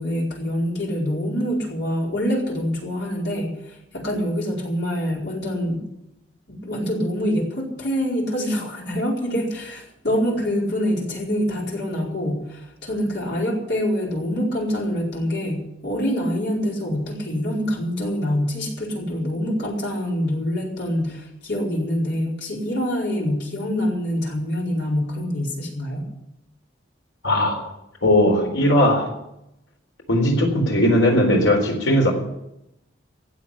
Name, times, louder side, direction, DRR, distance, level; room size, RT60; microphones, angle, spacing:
voice 1, 0.0-5.9 6.5-26.1, equal, 60° left, -2 dB, 4.7 m, -25 dB
voice 2, 27.2-27.7 28.0-29.1 30.1-32.1, left 1 dB, 75° left, 2 dB, 4.0 m, -18 dB
16.0 x 7.3 x 9.9 m, 0.84 s
head